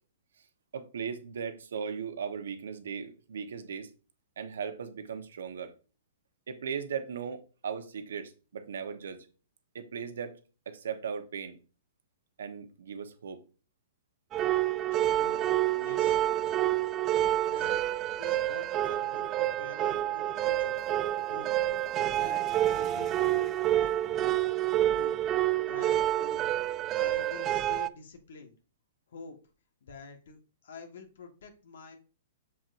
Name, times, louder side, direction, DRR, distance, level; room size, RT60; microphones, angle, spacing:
voice 1, 0.7-3.9 4.4-5.7 6.5-9.3 9.7-10.4 10.7-11.6 12.4-13.4, right 6 dB, 85° right, 1.1 m, -37 dB
sound 1, 14.3-27.9, right 13 dB, 25° right, 0.3 m, -28 dB
voice 2, 15.8-16.2 17.0-17.8 18.2-20.8 21.3-21.7 22.1-24.5 24.9-25.1 25.6-28.5 29.1-29.4 29.8-32.0, left 4 dB, 75° left, 1.5 m, -48 dB
7.1 x 5.9 x 2.6 m
hypercardioid pair, 145°, 0 cm